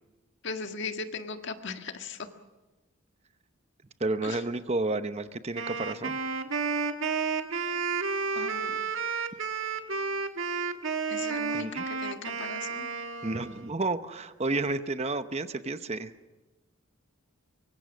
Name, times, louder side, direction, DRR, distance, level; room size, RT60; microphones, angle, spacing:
voice 1, 0.4-2.3 4.2-4.4 8.3-8.8 11.1-12.9, left 4 dB, 55° left, 6 dB, 1.7 m, -38 dB
voice 2, 4.0-6.2 11.5-11.9 13.2-16.1, right 2 dB, 30° right, 11 dB, 0.8 m, -31 dB
Wind instrument woodwind instrument, 5.5-13.7, right 5 dB, 60° right, 1.6 m, -31 dB
24.5 x 24.0 x 6.3 m, 1.2 s
head